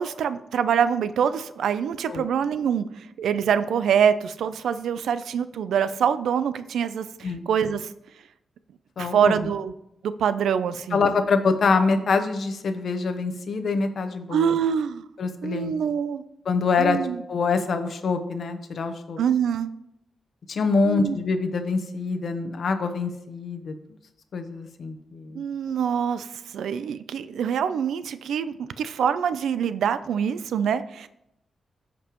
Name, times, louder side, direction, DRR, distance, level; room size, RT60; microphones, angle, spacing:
voice 1, 0.0-7.9 9.0-9.7 10.0-11.0 14.3-15.0 15.4-16.2 16.8-17.2 19.2-19.7 20.8-21.2 25.3-31.1, right 8 dB, 90° right, 13 dB, 0.4 m, -25 dB
voice 2, 9.0-9.4 10.9-14.5 15.2-15.7 16.5-17.0 17.3-19.2 20.5-23.7 24.3-25.4, left 4 dB, 55° left, 7 dB, 0.8 m, -25 dB
14.0 x 5.3 x 3.0 m, 0.82 s
wide cardioid pair, 125°, 0 cm